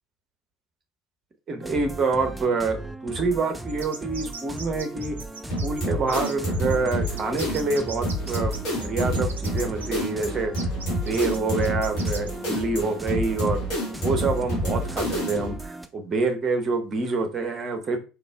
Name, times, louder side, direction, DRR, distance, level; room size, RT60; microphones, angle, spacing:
voice 1, 1.5-5.2 5.6-10.5 11.1-13.6 14.0-18.0, right 3 dB, 30° right, 5 dB, 0.7 m, -26 dB
sound 1, 1.6-15.9, right 1 dB, 5° right, 0.4 m, -37 dB
sound 2, 3.7-9.9 10.5-12.3, right 5 dB, 75° right, 0.4 m, -40 dB
sound 3, 5.5-15.6, equal, 45° left, 1.5 m, -28 dB
3.9 x 3.0 x 2.3 m, 0.32 s
figure-of-eight pair, 65°, 0 cm